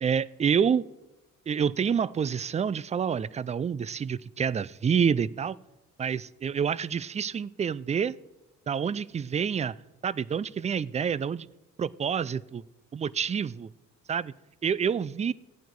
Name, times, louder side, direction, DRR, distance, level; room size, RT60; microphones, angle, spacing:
voice 1, 0.0-0.8 1.5-5.6 6.0-8.2 8.7-9.8 10.0-11.5 11.8-12.6 12.9-13.7 14.1-14.3 14.6-15.3, right 7 dB, 25° right, 20 dB, 0.4 m, -28 dB
14.5 x 9.2 x 4.6 m, 0.96 s
cardioid pair, 90°, 30 cm